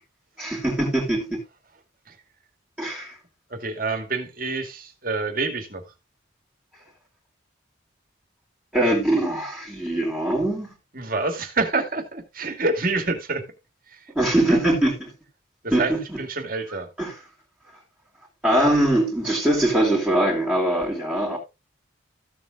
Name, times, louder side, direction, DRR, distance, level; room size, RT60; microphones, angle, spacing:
voice 1, 0.4-1.4 2.8-3.2 8.7-10.7 14.1-15.1 15.7-16.2 17.0-17.1 18.4-21.4, right 1 dB, 5° right, 3.0 m, -22 dB
voice 2, 3.5-5.8 10.9-13.5 13.9-14.1 14.3-14.6 15.6-16.9, right 3 dB, 45° right, 2.3 m, -27 dB
15.0 x 7.4 x 2.5 m
head